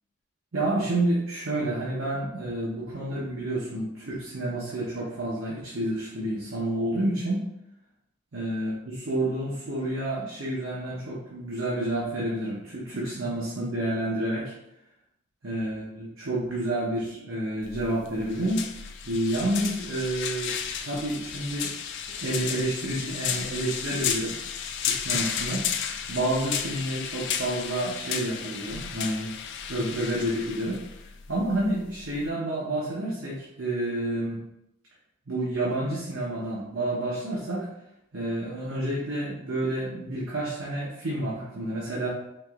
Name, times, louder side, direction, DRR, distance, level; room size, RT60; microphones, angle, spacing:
voice 1, 0.5-7.5 8.3-14.5 15.4-18.7 19.0-20.5 20.8-21.7 22.2-24.4 24.8-25.8 26.1-29.3 29.7-30.8 31.3-34.4 35.3-37.7 38.1-42.1, right 1 dB, 70° right, -6 dB, 0.8 m, -29 dB
sound 1, 17.6-32.3, left 8 dB, 55° left, 0.3 m, -33 dB
4.9 x 2.9 x 2.4 m, 0.83 s
head